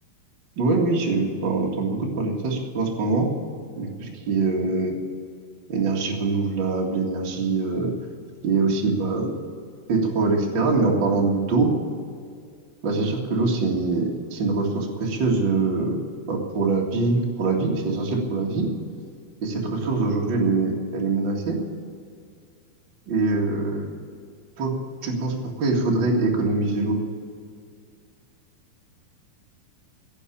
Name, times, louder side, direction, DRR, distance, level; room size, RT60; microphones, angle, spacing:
voice 1, 0.5-3.3 3.8-5.0 5.7-7.9 8.4-9.3 9.9-11.7 12.8-16.0 16.2-18.7 19.4-21.6 23.1-23.8 24.6-24.7 25.0-27.0, right 3 dB, 50° right, -2 dB, 1.3 m, -23 dB
16.0 x 7.3 x 10.0 m, 2.2 s
omnidirectional pair, 5.3 m